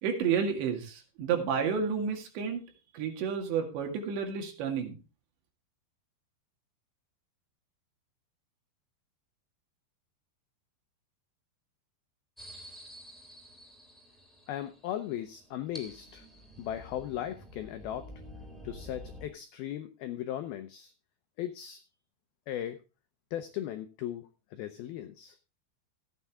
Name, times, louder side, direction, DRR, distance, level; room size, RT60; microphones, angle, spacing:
voice 1, 0.0-2.6 2.9-5.0, right 6 dB, 70° right, 3 dB, 4.3 m, -31 dB
sound 1, 12.4-19.3, equal, ahead, 1.9 m, -49 dB
voice 2, 14.5-16.3 16.6-18.1 18.6-20.9 21.4-21.8 22.5-22.8 23.3-25.4, left 11 dB, 80° left, 9 dB, 2.2 m, -37 dB
14.5 x 9.3 x 3.5 m, 0.31 s
omnidirectional pair, 5.3 m